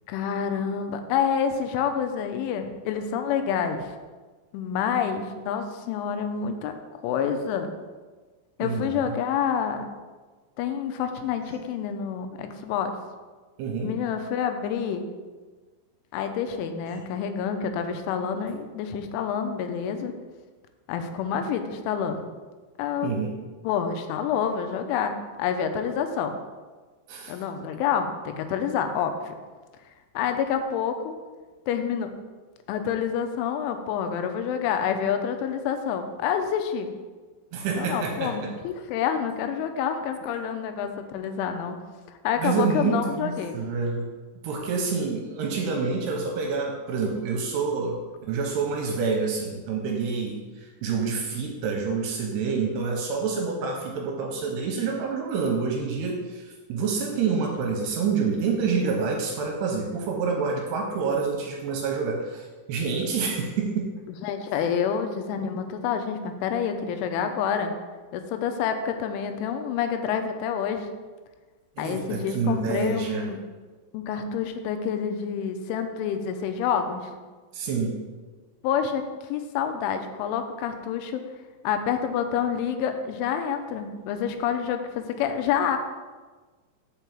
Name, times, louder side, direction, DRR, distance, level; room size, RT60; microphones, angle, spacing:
voice 1, 0.1-3.9 4.5-7.7 8.6-9.9 10.6-12.9 13.8-15.1 16.1-20.2 20.9-22.3 22.8-23.1 23.6-26.3 27.3-29.3 30.1-31.1 31.7-32.1 32.7-36.9 37.8-41.8 42.1-43.6 64.2-67.7 68.1-70.9 71.8-73.4 73.9-77.2 78.6-81.2 81.6-85.8, left 7 dB, 90° left, 7 dB, 3.2 m, -28 dB
voice 2, 13.6-14.0 23.0-23.4 27.1-27.4 37.5-38.5 42.4-44.1 44.4-64.0 71.8-73.3 77.5-78.0, right 5 dB, 80° right, 1 dB, 2.6 m, -27 dB
6.0 x 5.7 x 6.9 m, 1.4 s
omnidirectional pair, 5.5 m